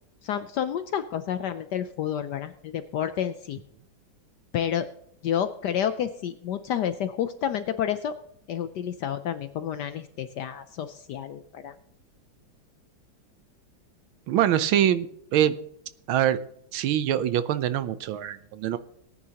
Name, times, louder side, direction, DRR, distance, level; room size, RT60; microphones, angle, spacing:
voice 1, 0.2-3.6 4.5-4.9 5.2-8.1 8.5-11.7, left 9 dB, 70° left, 11 dB, 1.0 m, -30 dB
voice 2, 14.3-15.5 16.1-16.4 16.7-18.8, right 11 dB, 75° right, 14 dB, 1.5 m, -24 dB
18.5 x 9.7 x 2.9 m, 0.73 s
omnidirectional pair, 2.3 m